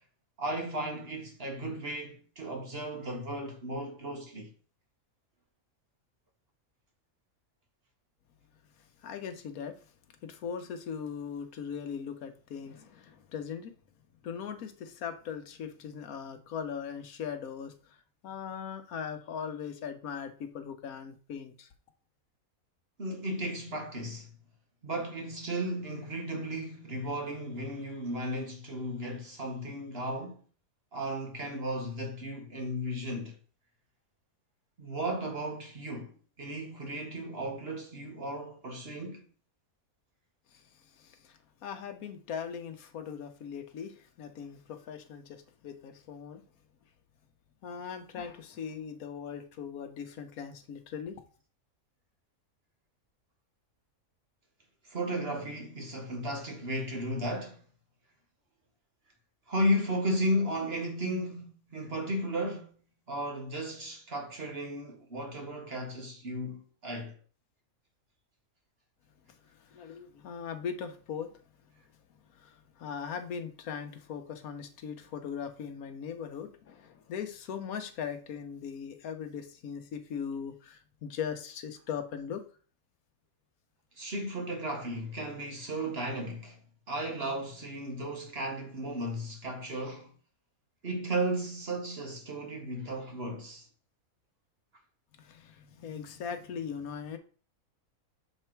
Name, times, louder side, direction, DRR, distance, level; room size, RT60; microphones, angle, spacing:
voice 1, 0.4-4.5 23.0-24.3 24.8-30.4 30.9-33.4 34.8-39.2 54.8-57.6 59.5-62.8 63.1-67.2 84.0-86.6 86.9-90.1 90.8-93.7, equal, 45° right, 1.5 m, -34 dB
voice 2, 9.0-9.8 10.2-13.8 14.2-18.0 18.2-21.7 40.5-46.4 47.6-51.2 69.5-71.3 72.3-82.5 95.2-97.2, left 7 dB, 85° left, 1.3 m, -39 dB
6.8 x 3.3 x 4.5 m
omnidirectional pair, 1.5 m